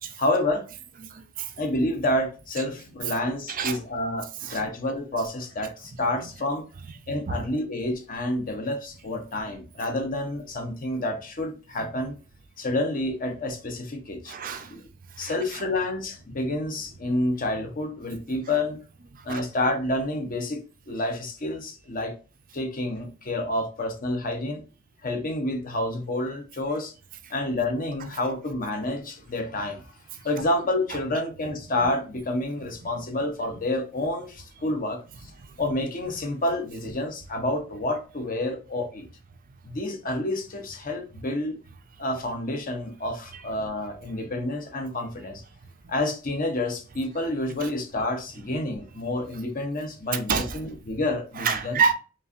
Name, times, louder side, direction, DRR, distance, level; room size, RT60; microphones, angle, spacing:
voice 1, 0.2-0.7 1.6-6.7 7.1-12.1 12.6-14.3 14.7-14.8 15.2-18.8 19.2-22.1 22.5-24.6 25.0-26.9 27.3-29.8 30.2-35.3 35.6-39.1 39.6-41.6 42.0-45.4 45.9-51.8, left 1 dB, 45° left, 0.8 m, -29 dB
voice 2, 1.1-1.5 3.5-3.8 4.4-4.6 7.3-7.4 14.3-14.7 15.2-15.6 19.3-19.4 31.8-31.9 50.1-50.6 51.4-51.9, right 6 dB, 45° right, 0.5 m, -27 dB
5.3 x 2.5 x 2.5 m
head